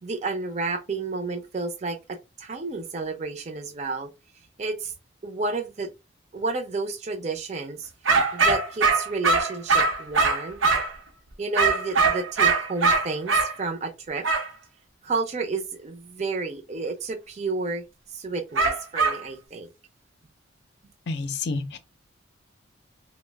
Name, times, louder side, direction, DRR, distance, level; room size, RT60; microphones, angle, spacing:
voice 1, 0.0-4.1 4.6-4.9 5.2-5.9 6.3-7.9 8.3-10.6 11.4-14.2 15.0-17.8 18.1-19.7, right 3 dB, 35° right, 0.5 m, -31 dB
sound 1, 8.1-11.0 11.6-13.5 14.2-14.5 18.6-19.2, right 4 dB, 80° right, 0.7 m, -21 dB
voice 2, 21.1-21.8, left 3 dB, 60° left, 0.5 m, -29 dB
2.8 x 2.0 x 3.3 m
head